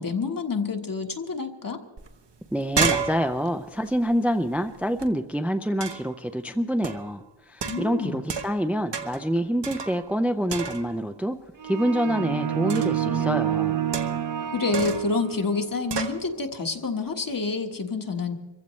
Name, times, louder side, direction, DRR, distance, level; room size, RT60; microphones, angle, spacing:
voice 1, 0.0-1.8 7.6-8.3 14.5-18.4, left 4 dB, 45° left, 4 dB, 1.5 m, -28 dB
sound 1, 2.0-2.1 2.4-5.1 5.8-6.2 6.8-7.1 7.6-8.7 8.9-9.3 9.6-10.2 10.5-11.1 12.7-13.1 13.9-14.4 14.7-15.2 15.9-16.2, right 6 dB, 65° right, 1.1 m, -31 dB
voice 2, 2.5-7.2 7.5-11.4 11.6-13.8, equal, 5° right, 7 dB, 0.5 m, -26 dB
sound 2, 11.6-15.6, right 10 dB, 45° right, 0.7 m, -28 dB
25.0 x 15.0 x 3.2 m, 1.2 s
wide cardioid pair, 95°, 45 cm